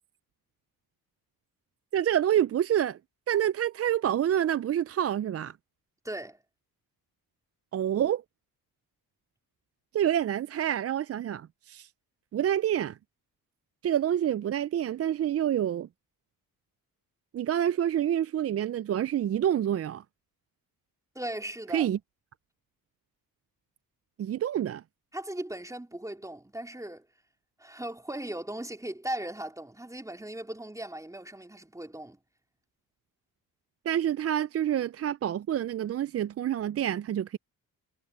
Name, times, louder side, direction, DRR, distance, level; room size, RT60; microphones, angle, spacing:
voice 1, 1.9-3.0 3.3-5.6 7.7-8.2 9.9-11.9 12.3-13.0 13.8-15.9 17.3-20.0 21.7-22.0 24.2-24.8 33.9-37.4, right 10 dB, 40° right, 0.4 m, -27 dB
voice 2, 6.0-6.4 21.2-21.9 25.1-27.1 27.6-32.2, right 1 dB, 10° right, 3.5 m, -38 dB
cardioid pair, 90°, 37 cm